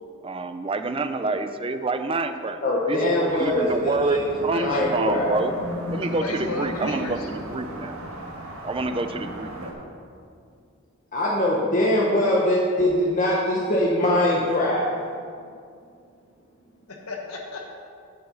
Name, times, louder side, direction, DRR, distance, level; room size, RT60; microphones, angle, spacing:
voice 1, 0.2-2.6 2.9-5.5 5.9-8.0 8.6-9.7, right 3 dB, 25° right, 9 dB, 0.4 m, -28 dB
voice 2, 2.6-4.3 4.6-5.4 11.1-14.9, left 1 dB, 35° left, -4 dB, 1.1 m, -22 dB
sound 1, 3.3-9.7, equal, 80° right, 1.6 m, -36 dB
voice 3, 4.5-4.8 6.0-7.3 16.9-17.7, left 3 dB, 85° left, 1 dB, 1.3 m, -34 dB
9.3 x 5.5 x 7.1 m, 2.3 s
head